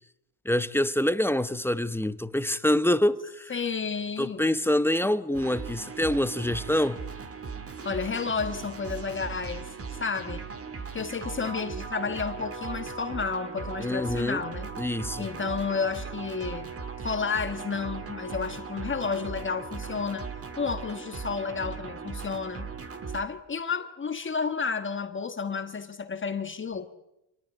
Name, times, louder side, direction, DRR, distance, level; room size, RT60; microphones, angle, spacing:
voice 1, 0.4-3.5 4.2-7.0 13.8-14.4 14.8-15.3, left 1 dB, 5° left, 0.8 m, -26 dB
voice 2, 3.5-4.6 7.8-10.4 10.9-14.7 15.2-16.7 17.0-20.3 20.6-22.7 23.1-26.9, left 5 dB, 25° left, 1.3 m, -31 dB
sound 1, 5.3-23.2, right 5 dB, 30° right, 2.3 m, -38 dB
27.0 x 19.0 x 9.0 m
cardioid pair, 125°, 43 cm